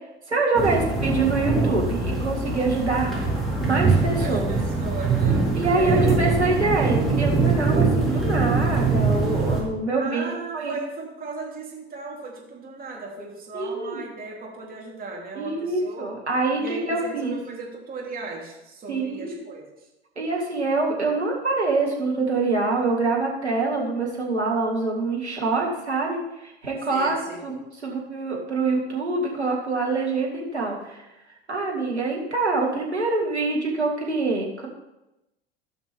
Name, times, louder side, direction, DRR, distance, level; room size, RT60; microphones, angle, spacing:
voice 1, 0.3-3.1 3.6-4.6 5.5-10.7 13.5-14.0 15.4-17.3 18.9-19.4 20.2-27.6 27.8-31.0 31.5-34.7, right 3 dB, 90° right, -2 dB, 2.1 m, -25 dB
sound 1, 0.5-9.6, right 3 dB, ahead, 3.8 m, -23 dB
voice 2, 4.2-6.4 10.0-16.1 16.6-19.9 26.9-27.6, right 3 dB, 25° right, -2 dB, 3.3 m, -36 dB
16.0 x 6.0 x 3.5 m, 0.95 s
figure-of-eight pair, 80°, 32 cm